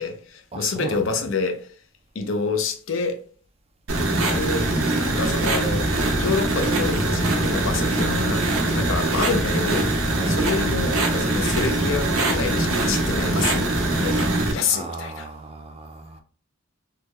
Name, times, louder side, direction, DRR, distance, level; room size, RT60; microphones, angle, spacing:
voice 1, 0.0-1.7 2.1-3.2 4.2-4.7 5.0-5.9 6.2-9.9 10.3-15.3, left 4 dB, 70° left, 0.5 m, -28 dB
voice 2, 0.5-1.1 10.1-10.4 14.7-16.2, right 3 dB, 30° right, 0.4 m, -35 dB
sound 1, 3.9-14.5, right 2 dB, 90° right, 0.9 m, -22 dB
3.3 x 2.2 x 3.1 m
head